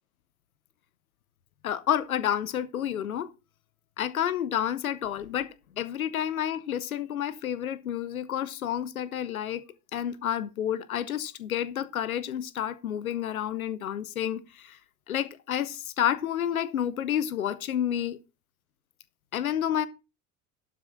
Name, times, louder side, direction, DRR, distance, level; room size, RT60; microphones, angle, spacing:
voice 1, 1.6-3.3 4.0-9.6 9.9-14.8 15.1-18.2 19.3-19.9, left 10 dB, 85° left, 0.8 m, -30 dB
12.0 x 6.4 x 4.4 m
figure-of-eight pair, 60°, 41 cm